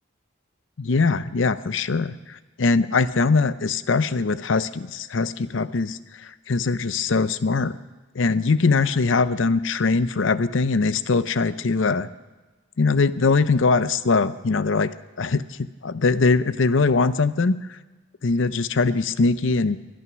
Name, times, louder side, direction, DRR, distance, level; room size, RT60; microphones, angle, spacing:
voice 1, 0.8-7.8 8.1-12.1 12.8-15.6 15.8-17.6 18.2-19.8, left 4 dB, 70° left, 14 dB, 0.6 m, -22 dB
23.5 x 8.9 x 6.1 m, 1.2 s
head